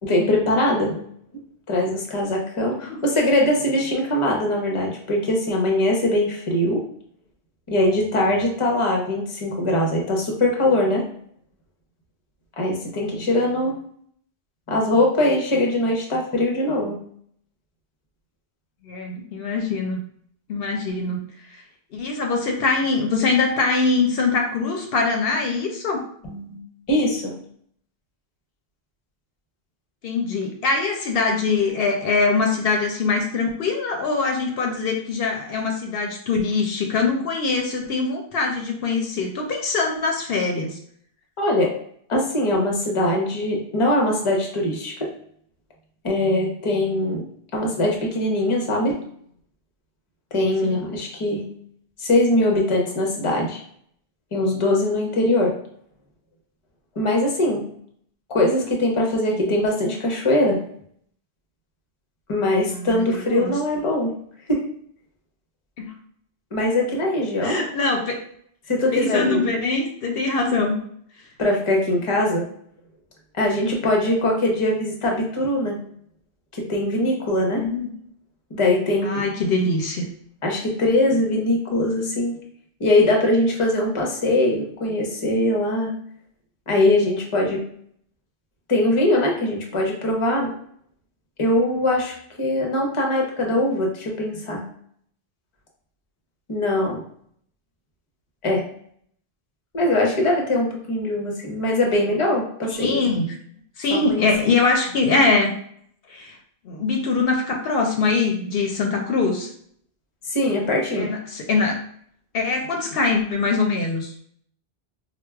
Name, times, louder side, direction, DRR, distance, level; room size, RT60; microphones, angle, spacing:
voice 1, 0.0-1.0 1.7-6.8 7.7-11.0 12.6-13.8 14.7-17.0 26.2-26.6 26.9-27.4 41.4-41.8 42.1-45.1 46.0-47.2 47.5-49.0 50.3-51.5 52.0-53.6 54.3-55.6 57.0-57.7 58.3-60.6 62.3-64.1 64.5-64.7 66.5-67.6 68.7-69.6 71.4-72.5 73.4-75.8 76.5-77.6 78.5-79.2 80.4-82.4 82.8-85.9 86.7-87.6 88.7-90.5 91.4-94.6 96.5-97.0 98.4-98.7 99.7-103.0 103.9-104.3 110.3-111.1, left 1 dB, 35° left, 0 dB, 0.7 m, -22 dB
voice 2, 18.8-20.0 20.5-21.2 21.9-26.0 30.0-40.8 50.6-50.8 59.3-59.5 62.7-63.5 65.8-65.9 67.4-68.2 68.9-70.8 77.6-77.9 79.0-80.1 102.7-103.4 103.8-105.5 106.1-106.4 106.6-109.5 110.9-111.8 112.3-114.1, left 4 dB, 70° left, 2 dB, 0.8 m, -23 dB
4.4 x 2.2 x 2.3 m, 0.64 s
omnidirectional pair, 1.0 m